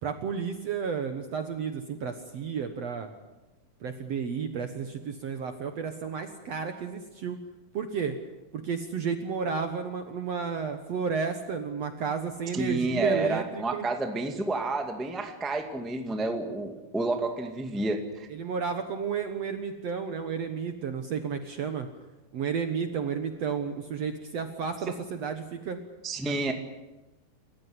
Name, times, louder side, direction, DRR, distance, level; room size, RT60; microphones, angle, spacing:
voice 1, 0.0-3.1 3.8-7.4 7.7-8.2 8.5-13.9 18.3-21.9 22.3-25.8 26.2-26.5, right 6 dB, 60° right, 7 dB, 1.9 m, -32 dB
voice 2, 12.5-18.3 26.0-26.5, right 2 dB, ahead, 4 dB, 1.1 m, -30 dB
28.5 x 15.5 x 9.7 m, 1.1 s
omnidirectional pair, 4.4 m